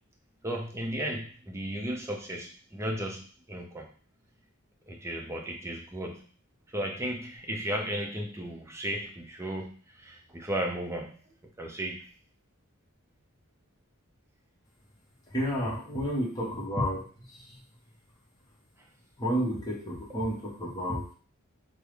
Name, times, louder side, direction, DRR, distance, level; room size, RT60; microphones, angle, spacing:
voice 1, 0.4-3.9 4.9-6.3 6.7-11.2 11.6-12.1, right 1 dB, 15° right, 1 dB, 0.5 m, -35 dB
voice 2, 15.3-17.1 17.3-17.5 19.2-21.1, equal, 20° left, -4 dB, 0.9 m, -31 dB
3.4 x 2.0 x 3.1 m, 0.41 s
head